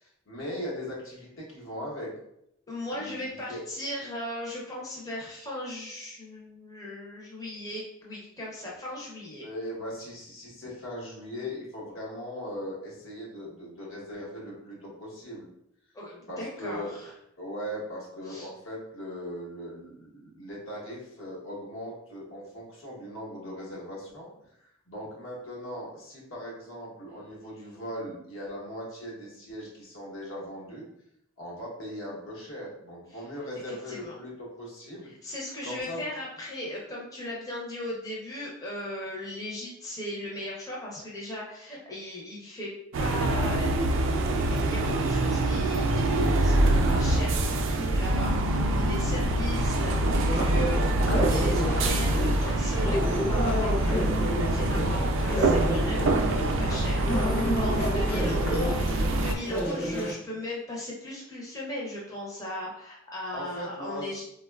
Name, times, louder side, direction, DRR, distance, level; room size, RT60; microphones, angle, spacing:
voice 1, 0.0-2.1 2.9-3.6 9.4-15.5 16.3-16.9 17.4-24.3 24.6-30.9 31.4-35.1 35.6-36.1 57.8-58.8 63.3-64.0, equal, 80° left, -4 dB, 0.9 m, -39 dB
voice 2, 2.7-9.5 15.9-17.1 18.3-18.5 33.1-33.2 33.5-34.2 35.0-42.7 43.0-43.9 44.4-64.2, left 1 dB, 15° left, -4 dB, 0.5 m, -38 dB
sound 1, 42.9-59.4, right 1 dB, 65° right, 0.3 m, -25 dB
sound 2, 50.3-60.1, equal, 50° left, 0.7 m, -31 dB
3.7 x 2.2 x 2.2 m, 0.78 s
head